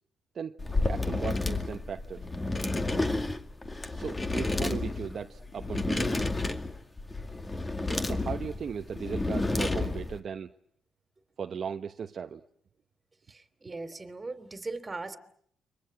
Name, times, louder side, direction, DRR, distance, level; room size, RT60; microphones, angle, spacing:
sound 1, 0.6-10.2, left 2 dB, 20° left, 2.3 m, -31 dB
voice 1, 0.8-2.3 3.9-6.1 8.0-10.5 11.4-12.4, right 7 dB, 50° right, 1.0 m, -37 dB
voice 2, 13.3-15.2, right 3 dB, 25° right, 3.1 m, -39 dB
29.5 x 24.5 x 7.9 m
cardioid pair, 90°, 0 cm